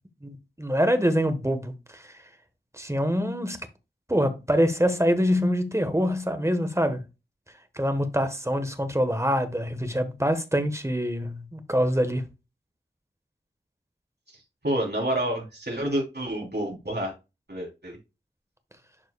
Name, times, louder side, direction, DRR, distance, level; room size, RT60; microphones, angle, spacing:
voice 1, 0.2-2.0 2.8-3.6 4.1-7.0 7.8-12.2, equal, 15° right, 1.3 m, -25 dB
voice 2, 14.6-17.1 17.5-18.0, right 1 dB, 60° right, 3.5 m, -28 dB
11.0 x 4.6 x 2.3 m
wide cardioid pair, 40°, 19 cm